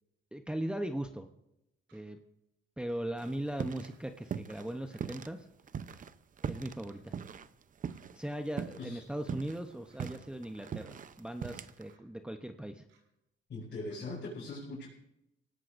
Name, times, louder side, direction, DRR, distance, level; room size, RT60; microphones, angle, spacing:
voice 1, 0.3-1.3 1.9-2.2 2.8-5.5 6.5-7.2 8.1-12.8, right 1 dB, 5° right, 5 dB, 0.8 m, -39 dB
clock ticking - atmo, 1.9-2.0 2.9-3.0 3.9-4.0 4.9-5.0 5.9-6.0 6.9-7.0 7.9-8.0 8.9-9.0 9.9-10.0 10.9-11.0 11.9-12.0 12.9-13.0 13.9-14.0, right 5 dB, 80° right, 6.4 m, -68 dB
sound 1, 3.2-3.9 4.2-5.3 5.7-8.3 8.6-8.9 9.2-11.9, right 7 dB, 40° right, 0.7 m, -40 dB
voice 2, 13.5-14.9, left 2 dB, 55° left, -5 dB, 5.8 m, -40 dB
25.5 x 18.0 x 2.6 m, 0.87 s
cardioid pair, 90°, 20 cm